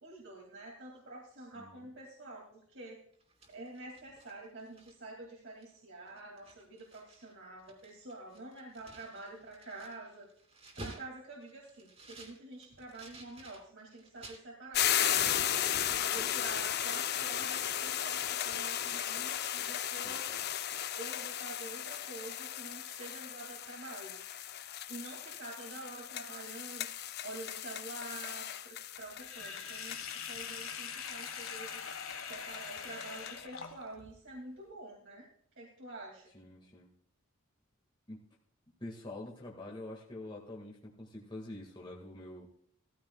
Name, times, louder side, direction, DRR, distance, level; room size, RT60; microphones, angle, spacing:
voice 1, 0.0-3.0 3.5-10.3 10.8-15.7 16.0-20.4 20.9-24.2 24.9-30.0 30.3-31.8 32.3-35.3 35.6-36.3, right 2 dB, 60° right, -2 dB, 2.4 m, -47 dB
voice 2, 1.5-1.9 20.0-20.4 36.3-36.9 38.1-38.2 38.8-42.4, left 1 dB, 25° left, -3 dB, 1.8 m, -46 dB
sound 1, 3.1-5.2 5.6-5.8 6.1-7.3 7.6-14.4 14.8-15.6 15.8-16.0, right 2 dB, 30° right, 2.8 m, -53 dB
sound 2, 14.7-33.4, left 10 dB, 50° left, 0.5 m, -36 dB
Sink (filling or washing), 29.2-34.1, left 6 dB, 80° left, 1.5 m, -43 dB
17.5 x 14.5 x 2.3 m, 0.66 s
head